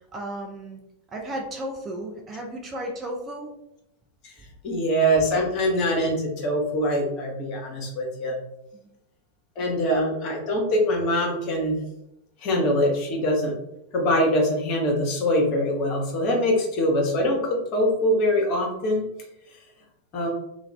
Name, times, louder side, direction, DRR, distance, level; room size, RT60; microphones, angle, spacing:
voice 1, 0.1-0.8 1.1-3.5 8.8-8.9, right 1 dB, 20° right, 0 dB, 0.4 m, -34 dB
voice 2, 4.6-8.4 9.6-11.8 12.4-13.5 13.9-19.0 20.1-20.3, equal, 40° left, 0 dB, 0.8 m, -23 dB
2.4 x 2.2 x 3.1 m, 0.82 s
figure-of-eight pair, 90°, 0 cm